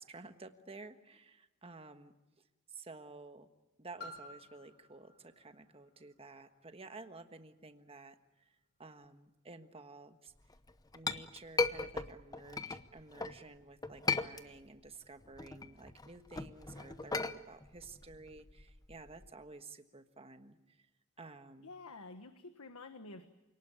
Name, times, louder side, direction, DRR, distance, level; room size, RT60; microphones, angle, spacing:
voice 1, 0.0-2.1 2.7-3.5 3.8-10.3 10.9-20.9 21.2-21.7, right 3 dB, 25° right, 8 dB, 1.4 m, -52 dB
Piano, 4.0-9.4 10.2-10.3, left 1 dB, 50° left, 5.8 m, -56 dB
Chink clink, 10.5-13.4 13.8-14.9 15.2-19.3, left 3 dB, 15° left, 0.8 m, -37 dB
voice 2, 21.6-23.3, left 3 dB, 90° left, 8 dB, 1.4 m, -49 dB
28.0 x 19.0 x 8.9 m, 1.1 s
head